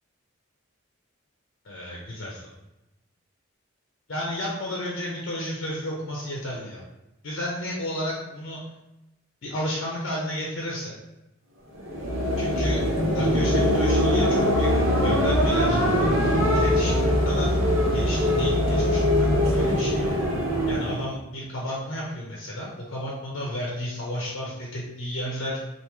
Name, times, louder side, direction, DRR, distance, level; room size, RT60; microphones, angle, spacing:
voice 1, 1.6-2.4 4.1-6.8 7.2-8.6 9.4-10.9 12.4-12.8 13.1-14.7 15.0-15.8 16.5-17.6 17.9-20.1 20.7-25.6, left 1 dB, 60° left, -3 dB, 0.7 m, -32 dB
sound 1, 11.7-21.1, equal, 70° right, 0.8 m, -22 dB
3.5 x 2.5 x 3.0 m, 0.94 s
head